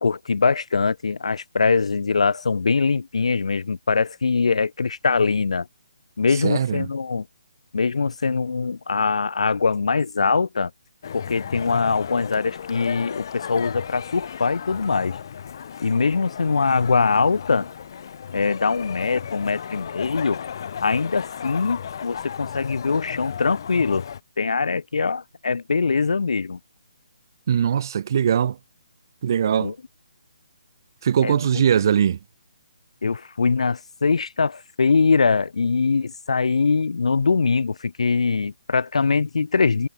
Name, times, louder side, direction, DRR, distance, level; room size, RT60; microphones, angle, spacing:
voice 1, 0.0-5.7 6.2-7.3 7.7-10.7 11.1-15.2 15.8-17.7 18.3-20.4 20.8-24.1 24.4-26.6 29.6-29.7 31.2-31.4 33.0-39.9, left 4 dB, 75° left, 1.4 m, -22 dB
voice 2, 6.4-6.9 27.5-28.6 29.2-29.7 31.0-32.2, right 8 dB, 35° right, 1.3 m, -20 dB
sound 1, 11.0-24.2, left 8 dB, 40° left, 4.6 m, -35 dB
hypercardioid pair, 170°, 3 cm